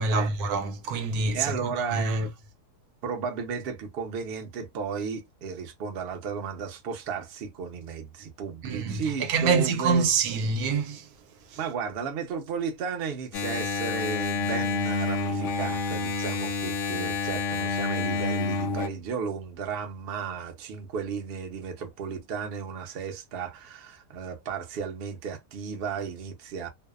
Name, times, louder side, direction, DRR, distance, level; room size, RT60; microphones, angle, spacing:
voice 1, 0.0-2.3 8.6-11.1 11.5-11.6, right 4 dB, 75° right, 1.1 m, -26 dB
voice 2, 1.3-2.3 3.0-10.1 11.6-26.7, right 6 dB, 60° right, 0.6 m, -34 dB
Engine, 13.3-18.9, left 4 dB, 65° left, 0.8 m, -28 dB
2.6 x 2.1 x 2.3 m
omnidirectional pair, 1.7 m